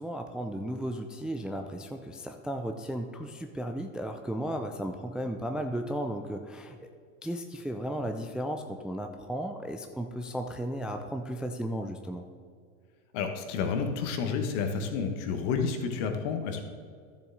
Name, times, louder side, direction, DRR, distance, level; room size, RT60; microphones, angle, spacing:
voice 1, 0.0-6.9 7.2-12.3, equal, ahead, 5 dB, 0.4 m, -35 dB
voice 2, 13.1-16.6, left 5 dB, 60° left, 6 dB, 1.4 m, -30 dB
12.0 x 7.0 x 3.9 m, 2.2 s
hypercardioid pair, 90°, 41 cm